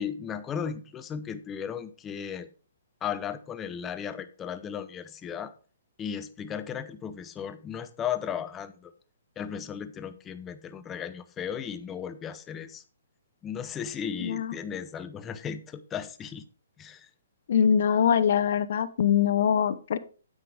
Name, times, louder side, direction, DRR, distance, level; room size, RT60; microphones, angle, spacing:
voice 1, 0.0-2.5 3.0-5.5 6.0-8.9 9.4-12.8 13.4-16.4 16.8-17.1, left 8 dB, 15° left, 11 dB, 0.7 m, -35 dB
voice 2, 14.2-14.5 17.5-20.0, left 8 dB, 55° left, 13 dB, 0.8 m, -23 dB
9.6 x 7.8 x 3.5 m, 0.37 s
hypercardioid pair, 160°, 0 cm